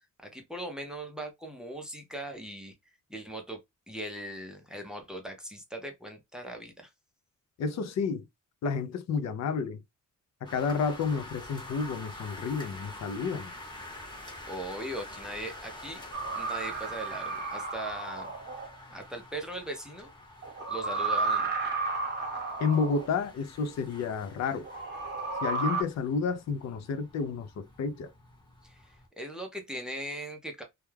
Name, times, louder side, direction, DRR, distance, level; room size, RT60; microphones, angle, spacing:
voice 1, 0.2-2.7 3.1-3.6 3.9-6.9 13.9-16.0 16.4-18.3 18.9-20.1 20.7-21.5 28.6-30.6, right 1 dB, ahead, 0.5 m, -39 dB
voice 2, 7.6-8.2 8.6-9.8 10.4-13.5 22.6-24.7 25.4-28.1, left 5 dB, 55° left, 0.5 m, -30 dB
sound 1, 10.4-29.1, left 1 dB, 15° left, 0.9 m, -47 dB
sound 2, 16.1-18.7 20.4-23.1 24.6-25.8, right 3 dB, 35° right, 0.8 m, -32 dB
2.3 x 2.2 x 3.1 m
wide cardioid pair, 155°, 32 cm